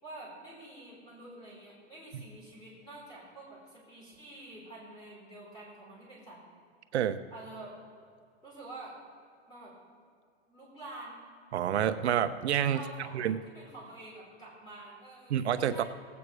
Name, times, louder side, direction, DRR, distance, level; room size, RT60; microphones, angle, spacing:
voice 1, 0.0-6.4 7.3-7.7 8.4-9.0 9.5-9.7 10.5-11.2 12.7-15.4 15.7-15.8, right 2 dB, 10° left, -5 dB, 3.8 m, -48 dB
voice 2, 11.5-12.8 13.1-13.4 15.3-15.8, right 9 dB, 70° right, 10 dB, 0.8 m, -28 dB
17.5 x 8.4 x 4.8 m, 2.3 s
hypercardioid pair, 165°, 34 cm